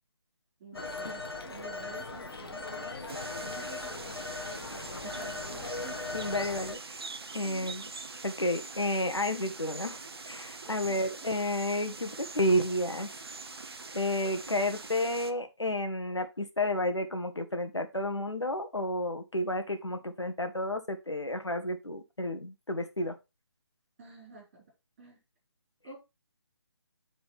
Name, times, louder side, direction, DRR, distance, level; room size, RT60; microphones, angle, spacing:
voice 1, 0.6-4.2 4.5-6.0 7.4-7.8 10.9-11.2 24.0-24.7 25.0-25.2 25.8-26.0, right 4 dB, 25° right, 5.1 m, -50 dB
Telephone, 0.7-6.7, left 3 dB, 60° left, 1.1 m, -39 dB
sound 1, 3.1-15.3, right 3 dB, 60° right, 0.8 m, -44 dB
voice 2, 6.1-7.0 7.3-7.8 8.2-13.1 13.9-23.2, left 1 dB, 85° left, 1.2 m, -31 dB
9.9 x 3.9 x 3.4 m
figure-of-eight pair, 150°, 14 cm